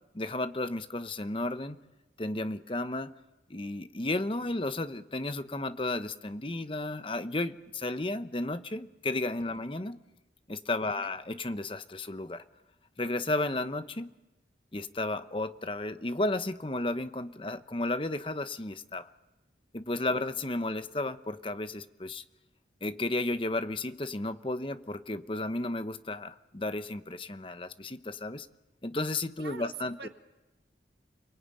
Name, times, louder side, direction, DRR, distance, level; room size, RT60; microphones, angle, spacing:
voice 1, 0.1-1.8 2.2-3.2 3.5-10.0 10.5-12.4 13.0-14.1 14.7-19.1 19.7-22.2 22.8-28.5 28.8-30.1, left 2 dB, 30° left, 11 dB, 0.9 m, -33 dB
voice 2, 10.8-11.1 29.4-30.1, right 5 dB, 65° right, 7 dB, 1.8 m, -45 dB
29.5 x 21.5 x 9.1 m, 1.0 s
head